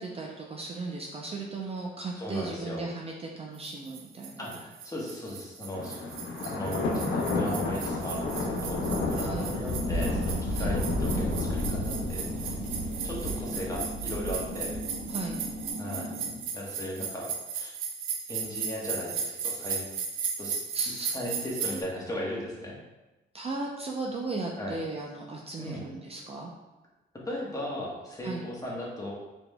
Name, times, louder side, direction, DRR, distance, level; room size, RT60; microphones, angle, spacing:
voice 1, 0.0-4.5 9.2-9.5 10.5-10.7 15.1-15.4 20.7-21.1 21.7-21.8 23.3-26.5 28.2-28.4, right 3 dB, 30° right, -1 dB, 0.5 m, -36 dB
voice 2, 2.1-2.8 4.4-6.0 6.4-12.5 13.0-14.7 15.8-16.1 16.5-17.7 18.3-19.8 20.4-20.7 21.1-22.8 24.6-24.7 25.6-25.8 27.3-29.1, left 1 dB, 15° left, -4 dB, 1.2 m, -37 dB
sound 1, 3.6-21.8, right 6 dB, 85° right, 0.5 m, -36 dB
Thunder, 5.7-15.6, left 2 dB, 70° left, 0.8 m, -31 dB
sound 2, 9.4-16.4, equal, 70° right, 1.1 m, -39 dB
4.7 x 3.5 x 2.2 m, 1.1 s
cardioid pair, 90°, 20 cm